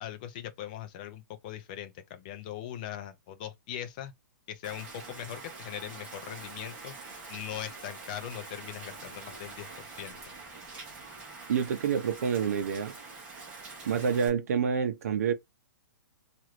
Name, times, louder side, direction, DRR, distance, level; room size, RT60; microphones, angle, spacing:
voice 1, 0.0-4.1 4.5-6.9 7.3-9.7 10.0-10.2, left 11 dB, 25° left, 0.5 m, -40 dB
Rain, 4.6-14.3, right 3 dB, 10° right, 0.8 m, -45 dB
voice 2, 11.5-13.0 13.9-15.3, right 7 dB, 45° right, 0.7 m, -28 dB
3.0 x 2.5 x 3.0 m
hypercardioid pair, 175°, 11 cm